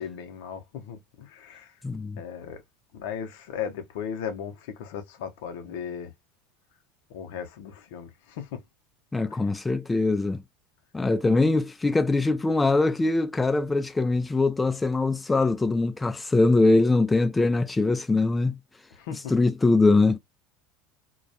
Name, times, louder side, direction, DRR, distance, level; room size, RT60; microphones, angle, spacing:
voice 1, 0.0-1.8 2.2-2.6 2.9-6.1 7.1-8.6 9.3-9.4 18.9-19.3, left 8 dB, 70° left, 0.6 m, -36 dB
voice 2, 1.8-2.2 9.1-10.4 10.9-18.6 19.3-20.2, left 3 dB, 15° left, 0.3 m, -22 dB
2.2 x 2.2 x 2.6 m
hypercardioid pair, 85°, 0 cm